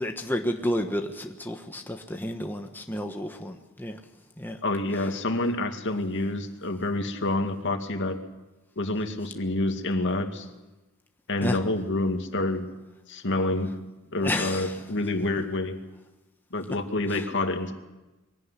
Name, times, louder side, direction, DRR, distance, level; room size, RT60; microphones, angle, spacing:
voice 1, 0.0-4.0 4.4-4.6 4.9-5.1 11.4-11.6 14.2-14.8 17.1-17.3, left 1 dB, 10° left, 3 dB, 1.3 m, -31 dB
voice 2, 4.6-8.2 8.8-10.5 11.3-12.7 13.1-13.7 14.1-15.8 16.5-17.7, left 2 dB, 60° left, 5 dB, 2.3 m, -28 dB
23.0 x 17.5 x 10.0 m, 1.1 s
head